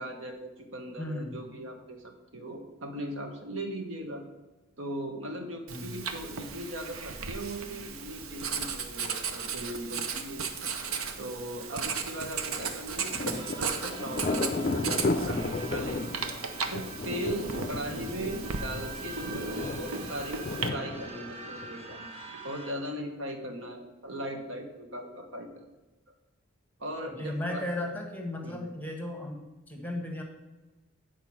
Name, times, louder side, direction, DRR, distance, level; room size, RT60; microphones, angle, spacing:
voice 1, 0.0-4.2 4.8-10.6 11.2-16.1 16.4-25.6 26.8-27.6 28.4-28.7, right 1 dB, 65° right, 4 dB, 1.2 m, -39 dB
voice 2, 1.0-1.3 5.7-5.9 13.2-13.4 17.7-18.0 27.1-30.2, left 1 dB, 10° left, 2 dB, 1.2 m, -36 dB
Writing, 5.7-20.7, right 5 dB, 90° right, 0.8 m, -36 dB
Thunder, 12.6-22.1, left 2 dB, 35° left, 0.4 m, -34 dB
sound 1, 13.3-22.7, right 4 dB, 30° right, 0.9 m, -45 dB
8.9 x 4.6 x 6.1 m, 1.1 s
head